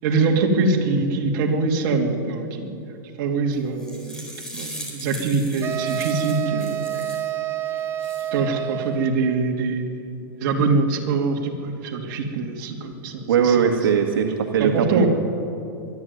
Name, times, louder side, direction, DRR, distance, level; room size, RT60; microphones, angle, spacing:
voice 1, 0.0-4.2 4.5-7.0 8.3-10.0 10.4-13.7 14.6-15.1, right 3 dB, 50° right, 0 dB, 2.9 m, -24 dB
sound 1, 3.5-7.3 7.8-8.3, equal, 5° left, 4.2 m, -39 dB
sound 2, 5.6-9.3, right 11 dB, 20° right, 0.9 m, -28 dB
voice 2, 13.3-15.1, right 7 dB, 85° right, 2 dB, 1.8 m, -20 dB
23.5 x 11.5 x 9.6 m, 2.6 s
supercardioid pair, 155°, 12 cm